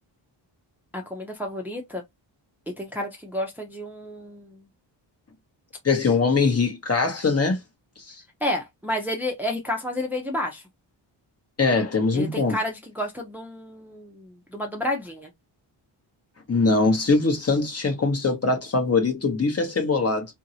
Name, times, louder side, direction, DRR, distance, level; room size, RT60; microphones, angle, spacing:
voice 1, 0.9-2.0 2.8-4.6 8.4-10.6 12.1-15.3, left 1 dB, 5° right, 0.7 m, -30 dB
voice 2, 5.8-7.6 8.1-8.2 11.6-12.6 16.5-20.3, left 3 dB, 30° left, 1.0 m, -22 dB
2.9 x 2.7 x 2.7 m
wide cardioid pair, 110°, 46 cm